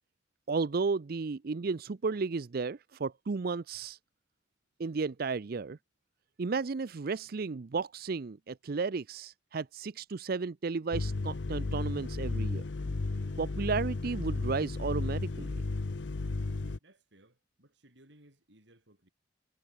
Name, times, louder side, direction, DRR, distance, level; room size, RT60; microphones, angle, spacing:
voice 1, 0.5-4.0 4.8-5.8 6.4-12.6 13.4-15.6, right 4 dB, 50° right, 0.5 m, -33 dB
sound 1, 10.9-16.8, left 3 dB, 65° left, 0.7 m, -34 dB
voice 2, 16.8-19.1, right 1 dB, 70° right, 6.2 m, -62 dB
head